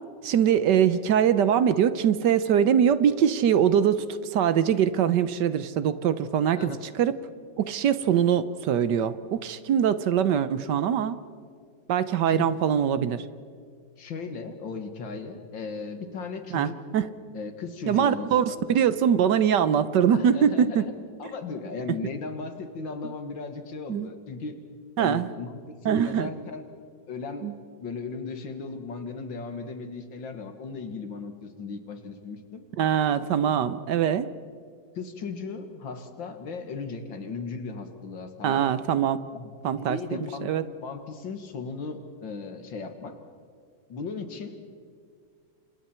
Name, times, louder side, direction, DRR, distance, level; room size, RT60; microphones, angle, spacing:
voice 1, 0.2-4.0 4.3-7.1 7.6-11.2 11.9-13.3 16.5-17.1 17.9-20.9 23.9-24.1 25.0-25.3 25.8-26.3 27.4-27.5 32.8-34.3 38.4-39.2 39.6-40.6, right 8 dB, 70° right, 14 dB, 1.4 m, -23 dB
voice 2, 14.0-16.8 17.3-18.8 20.1-20.9 21.2-24.6 25.0-26.7 27.1-27.5 27.8-32.6 35.0-38.6 39.3-40.5 40.8-43.2 43.9-44.6, left 4 dB, 80° left, 7 dB, 2.4 m, -36 dB
29.0 x 27.0 x 4.4 m, 2.1 s
omnidirectional pair, 2.1 m